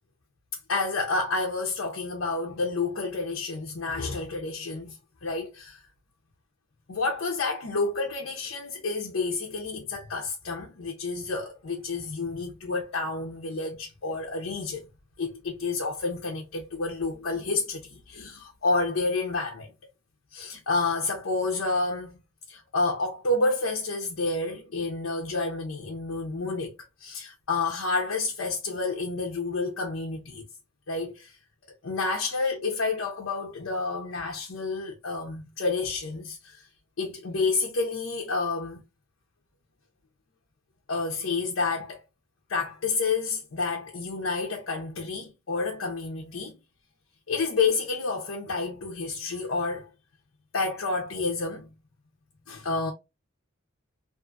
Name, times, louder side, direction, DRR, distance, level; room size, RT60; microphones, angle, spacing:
voice 1, 0.7-5.0 5.2-5.8 6.9-14.9 15.2-19.7 20.3-22.2 22.5-26.7 27.0-30.4 30.9-31.3 31.8-36.6 37.0-38.8 40.9-42.0 42.5-46.6 47.3-49.9 50.5-51.7 52.5-52.9, left 3 dB, 90° left, 0.8 m, -29 dB
2.7 x 2.4 x 2.6 m
head